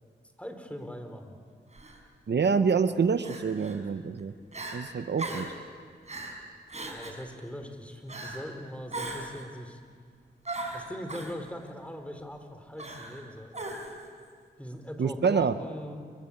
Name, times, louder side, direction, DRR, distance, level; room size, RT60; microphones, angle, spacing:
voice 1, 0.4-1.4 6.8-9.8 10.7-13.7 14.6-16.0, equal, 5° left, 6 dB, 4.5 m, -41 dB
Crying sobbing, 1.7-2.0 3.2-3.8 4.2-4.3 4.5-4.8 5.2-5.6 6.1-6.4 6.7-7.2 8.1-8.5 8.9-9.4 10.5-11.3 12.8-13.2 13.5-14.1, right 2 dB, 35° right, 5.7 m, -38 dB
voice 2, 2.3-4.3 4.7-5.5 15.0-15.5, right 5 dB, 65° right, 10 dB, 0.9 m, -26 dB
28.0 x 23.5 x 8.8 m, 2.1 s
cardioid pair, 55°, 19 cm